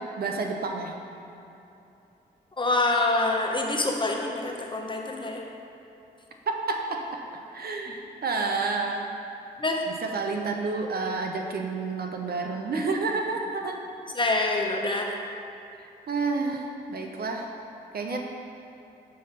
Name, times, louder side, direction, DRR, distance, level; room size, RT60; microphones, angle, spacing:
voice 1, 0.2-0.9 6.5-7.0 7.5-9.1 10.0-13.8 15.8-17.4 17.9-18.2, right 4 dB, 60° right, 2 dB, 0.8 m, -29 dB
voice 2, 2.6-5.4 9.6-9.8 14.2-15.2 18.1-18.2, left 2 dB, 25° left, 1 dB, 1.0 m, -26 dB
5.5 x 5.4 x 5.8 m, 2.9 s
cardioid pair, 60°, 18 cm